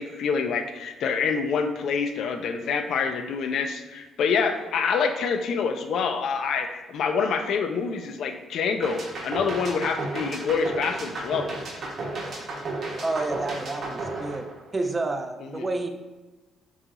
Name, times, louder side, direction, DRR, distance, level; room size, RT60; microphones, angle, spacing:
voice 1, 0.0-11.5 15.5-15.7, left 5 dB, 65° left, 6 dB, 0.3 m, -26 dB
sound 1, 8.8-15.0, right 2 dB, 45° right, 0.7 m, -33 dB
voice 2, 13.0-14.5 14.7-15.9, right 2 dB, 20° right, 5 dB, 0.3 m, -29 dB
2.8 x 2.3 x 4.0 m, 1.2 s
cardioid pair, 130°, 0 cm